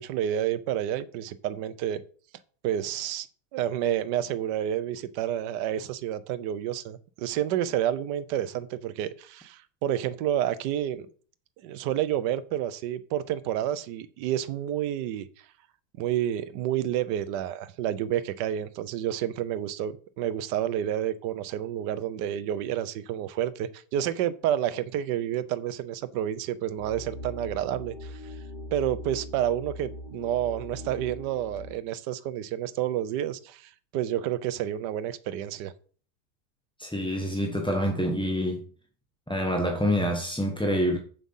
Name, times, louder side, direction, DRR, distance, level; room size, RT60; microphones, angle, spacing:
voice 1, 0.0-2.0 2.6-3.3 3.5-11.1 11.6-15.3 16.0-28.4 28.7-35.7, right 11 dB, 80° right, 1.3 m, -29 dB
sound 1, 26.8-31.8, equal, 90° left, 4.0 m, -41 dB
voice 2, 36.8-38.7 39.3-41.0, equal, 5° left, 0.7 m, -26 dB
7.5 x 7.3 x 5.4 m
omnidirectional pair, 1.9 m